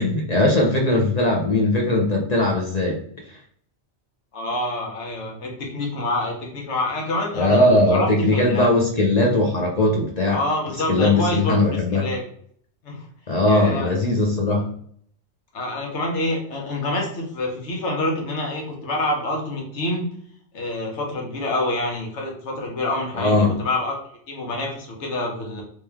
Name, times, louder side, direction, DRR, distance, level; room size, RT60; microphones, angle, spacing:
voice 1, 0.0-3.0 3.3-3.4 7.3-10.4 10.9-12.1 13.3-14.7 23.1-23.5, left 2 dB, 45° left, 0 dB, 0.6 m, -19 dB
voice 2, 4.3-8.7 10.3-11.6 11.9-12.2 12.8-13.1 13.5-13.9 15.5-20.1 20.5-24.0 24.3-25.6, left 1 dB, 75° left, 0 dB, 1.3 m, -27 dB
3.2 x 3.1 x 3.4 m, 0.62 s
omnidirectional pair, 1.2 m